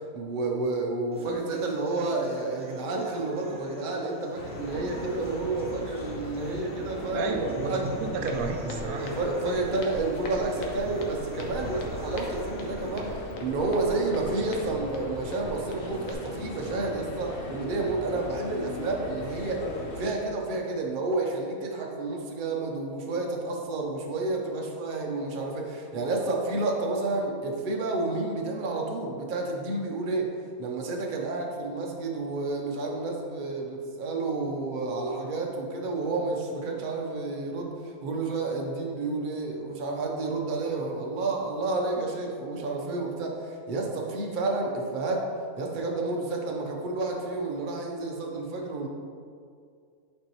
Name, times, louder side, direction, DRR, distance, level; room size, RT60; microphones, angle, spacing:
voice 1, 0.1-7.3 7.7-7.9 9.0-19.6 20.0-30.3 30.6-45.2 45.6-48.9, right 3 dB, 45° right, 0 dB, 0.8 m, -30 dB
sound 1, 1.1-13.1, equal, 5° right, 0.5 m, -42 dB
sound 2, 4.4-20.1, left 2 dB, 50° left, 0.9 m, -39 dB
voice 2, 7.1-9.1, right 3 dB, 85° right, 4 dB, 1.0 m, -31 dB
Walk footsteps, 8.3-16.1, left 2 dB, 75° left, 1.1 m, -42 dB
8.4 x 4.4 x 3.0 m, 2.3 s
omnidirectional pair, 1.5 m